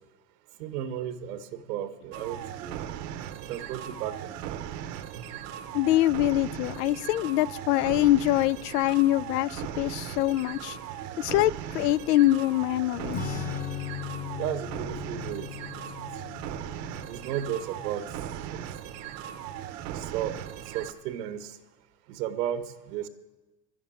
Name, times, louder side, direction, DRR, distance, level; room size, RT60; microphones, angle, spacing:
voice 1, 0.6-2.7 3.4-4.6 5.2-5.3 14.4-15.5 17.1-18.0 18.5-18.6 19.9-20.3 20.7-21.6 22.1-23.1, right 10 dB, 85° right, 1.1 m, -34 dB
sound 1, 2.1-20.9, right 10 dB, 35° right, 0.7 m, -38 dB
voice 2, 5.7-10.8 11.2-13.4, left 15 dB, 90° left, 0.5 m, -24 dB
Acoustic guitar / Strum, 13.1-19.1, left 9 dB, 20° left, 0.8 m, -38 dB
11.5 x 7.3 x 9.9 m
supercardioid pair, 155°, 46 cm